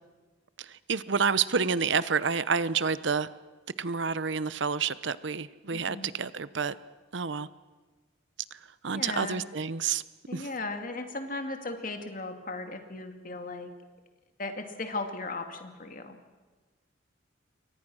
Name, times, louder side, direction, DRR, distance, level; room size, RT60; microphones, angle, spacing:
voice 1, 0.6-3.3 3.8-6.7 7.1-7.5 8.8-10.0 10.3-10.5, right 5 dB, 65° right, 16 dB, 0.8 m, -29 dB
voice 2, 5.7-6.1 8.9-9.4 10.3-13.7 14.4-16.2, left 3 dB, 45° left, 6 dB, 2.5 m, -37 dB
28.5 x 23.5 x 6.3 m, 1.3 s
head